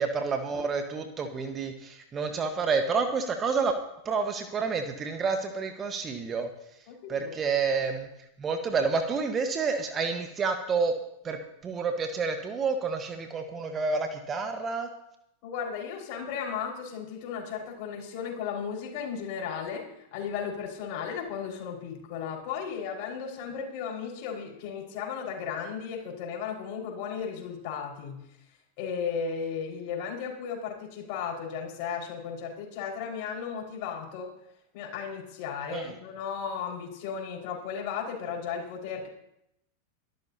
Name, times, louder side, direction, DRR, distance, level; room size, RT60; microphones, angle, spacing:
voice 1, 0.0-3.7 4.0-6.5 7.1-8.1 8.4-10.9 11.2-11.4 11.6-14.9 35.7-35.9, right 5 dB, 25° right, 6 dB, 1.4 m, -29 dB
voice 2, 6.9-7.3 15.4-19.8 20.1-28.2 28.8-34.3 34.7-39.1, left 7 dB, 45° left, 0 dB, 5.2 m, -35 dB
24.0 x 13.5 x 2.9 m, 0.81 s
figure-of-eight pair, 90°, 0 cm